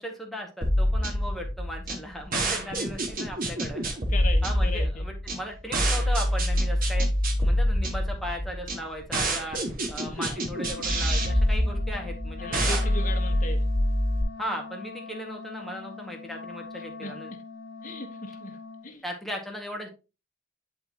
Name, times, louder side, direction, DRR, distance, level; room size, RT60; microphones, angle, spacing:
voice 1, 0.0-4.0 4.4-7.1 7.4-9.6 9.9-12.8 14.4-17.3 19.0-19.9, equal, ahead, 1.8 m, -37 dB
sound 1, 0.6-14.2, equal, 45° right, 1.7 m, -26 dB
voice 2, 2.4-2.8 4.1-5.0 10.1-10.4 12.4-13.7 16.7-17.1 17.8-19.0, left 3 dB, 40° left, 1.3 m, -38 dB
Wind instrument woodwind instrument, 10.5-18.9, left 4 dB, 55° left, 1.5 m, -41 dB
10.5 x 4.5 x 2.9 m
head